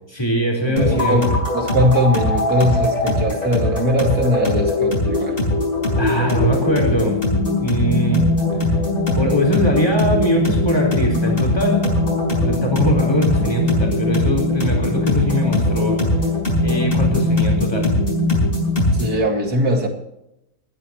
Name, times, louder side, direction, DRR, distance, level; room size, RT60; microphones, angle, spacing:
voice 1, 0.1-1.2 6.0-7.2 7.6-8.2 9.1-11.8 12.4-16.0 16.6-17.9, equal, 15° left, 0 dB, 4.7 m, -21 dB
voice 2, 0.6-5.4 18.9-19.9, equal, 75° right, 3 dB, 2.9 m, -20 dB
sound 1, 0.8-19.2, left 1 dB, 35° left, 5.5 m, -20 dB
20.0 x 13.5 x 3.1 m, 0.82 s
omnidirectional pair, 1.6 m